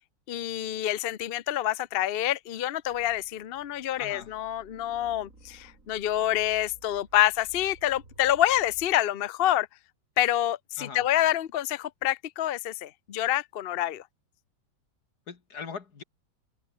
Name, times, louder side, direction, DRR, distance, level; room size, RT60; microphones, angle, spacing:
voice 1, 0.3-9.7 10.2-14.0, left 13 dB, 75° left, 0.5 m, -27 dB
sound 1, 2.8-9.0, right 2 dB, 40° right, 5.0 m, -55 dB
voice 2, 4.0-4.3 10.8-11.0 15.3-16.0, left 5 dB, 55° left, 2.6 m, -40 dB
open air
omnidirectional pair, 2.1 m